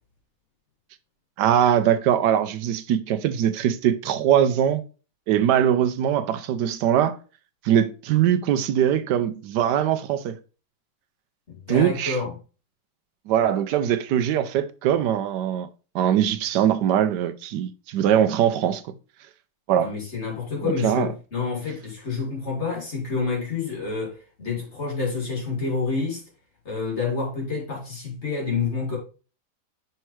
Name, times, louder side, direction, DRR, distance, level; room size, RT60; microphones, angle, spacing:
voice 1, 1.4-4.8 5.3-7.2 7.6-10.4 11.7-12.2 13.3-15.7 15.9-18.8 19.7-19.9 20.6-21.1, right 10 dB, 80° right, 1.2 m, -21 dB
voice 2, 11.5-12.3 19.8-26.2 26.6-29.0, left 4 dB, 40° left, 2.6 m, -28 dB
5.6 x 5.5 x 3.1 m
omnidirectional pair, 1.8 m